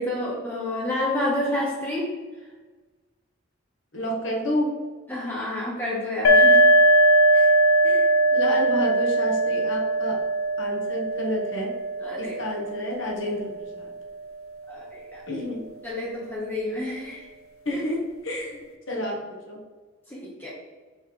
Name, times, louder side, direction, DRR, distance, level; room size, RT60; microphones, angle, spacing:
voice 1, 0.0-2.1 5.1-6.7 12.0-12.4 14.7-15.2 15.8-17.3 17.7-17.8 20.1-20.5, left 1 dB, 10° left, -5 dB, 0.9 m, -29 dB
voice 2, 3.9-4.7 7.3-7.6 7.8-10.2 10.6-11.7 12.2-13.5 13.8-13.9 15.3-15.6 17.6-19.6, left 1 dB, 60° left, -1 dB, 1.3 m, -30 dB
sound 1, 6.2-13.7, right 1 dB, 80° left, 0.6 m, -20 dB
5.6 x 3.2 x 5.1 m, 1.3 s
head